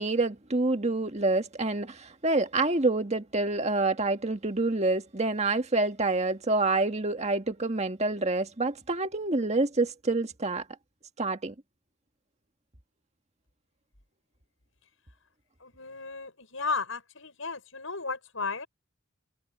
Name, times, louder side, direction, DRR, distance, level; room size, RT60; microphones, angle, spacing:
voice 1, 0.0-10.6 11.2-11.5, right 2 dB, 35° right, 1.7 m, -27 dB
voice 2, 15.6-18.7, left 4 dB, 75° left, 7.1 m, -34 dB
head